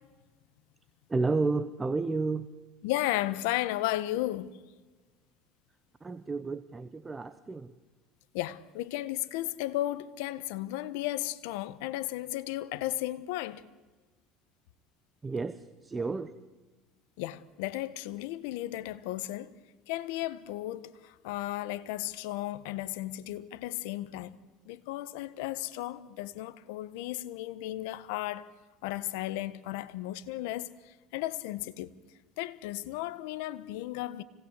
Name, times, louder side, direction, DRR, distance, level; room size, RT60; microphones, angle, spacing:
voice 1, 1.1-2.5 6.0-7.7 15.2-16.3, right 3 dB, 20° right, 0.9 m, -31 dB
voice 2, 2.8-4.5 8.3-13.6 17.2-19.5 19.9-24.4 24.7-28.5 28.8-31.9 32.4-34.2, left 15 dB, 80° left, 1.2 m, -34 dB
25.0 x 19.0 x 8.2 m
supercardioid pair, 110°, 0 cm